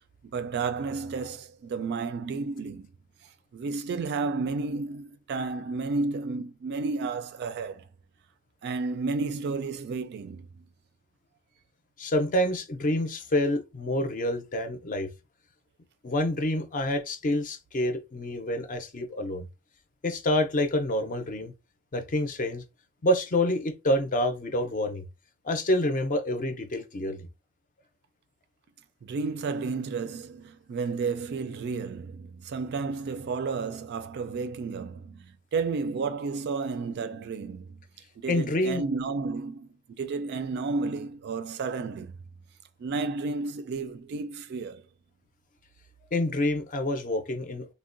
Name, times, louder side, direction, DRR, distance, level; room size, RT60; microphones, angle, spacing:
voice 1, 0.2-2.9 3.5-7.9 8.6-10.6 29.0-37.8 38.2-42.1 42.8-44.8, right 4 dB, 50° right, 0.3 m, -32 dB
voice 2, 12.0-15.1 16.0-19.5 20.0-21.5 21.9-22.6 23.0-25.0 25.4-27.3 38.3-38.8 46.1-47.7, left 1 dB, 40° left, 0.5 m, -27 dB
3.5 x 2.1 x 2.5 m
head